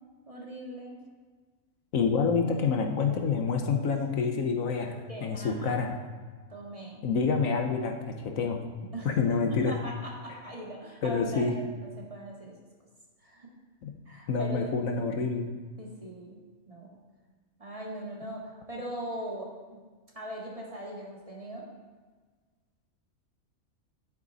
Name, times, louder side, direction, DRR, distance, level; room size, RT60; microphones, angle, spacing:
voice 1, 0.3-1.0 3.9-4.0 5.1-5.9 6.5-7.1 8.9-9.1 9.5-12.5 13.2-13.5 14.1-15.2 15.8-16.4 16.7-17.0 17.6-19.8 20.1-21.7, right 1 dB, 25° right, -3 dB, 1.9 m, -40 dB
voice 2, 1.9-6.0 7.0-8.6 9.0-9.7 11.0-11.5 13.8-13.9 14.3-15.5, left 5 dB, 75° left, 4 dB, 1.3 m, -27 dB
10.5 x 8.9 x 4.1 m, 1.4 s
omnidirectional pair, 1.4 m